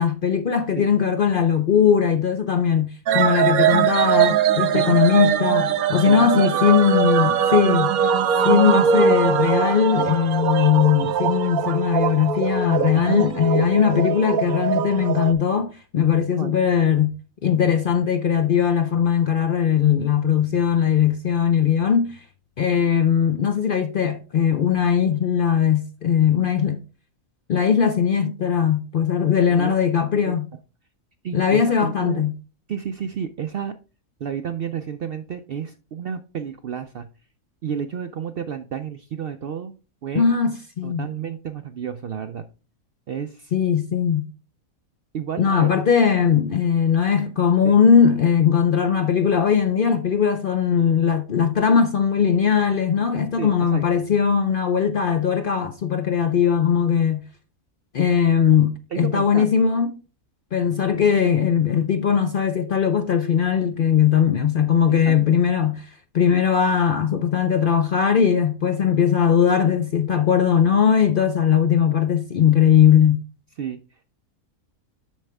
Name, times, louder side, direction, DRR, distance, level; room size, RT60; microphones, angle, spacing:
voice 1, 0.0-7.9 8.4-17.1 17.4-22.2 22.6-26.8 27.5-30.5 31.3-32.3 40.1-41.1 43.5-44.3 45.4-57.2 57.9-60.0 60.5-73.2, left 8 dB, 60° left, 0.6 m, -19 dB
sound 1, 3.1-15.3, right 8 dB, 85° right, 1.2 m, -21 dB
voice 2, 6.0-6.7 12.9-13.2 16.4-16.6 29.4-29.7 30.1-30.4 31.2-32.2 32.7-33.7 34.2-37.1 37.6-39.7 40.0-40.3 40.8-42.4 43.1-43.5 45.1-45.7 47.6-47.8 53.4-53.8 58.9-59.5 65.1-65.2 73.6-74.0, right 8 dB, 70° right, 0.5 m, -31 dB
7.4 x 6.4 x 3.3 m
omnidirectional pair, 1.5 m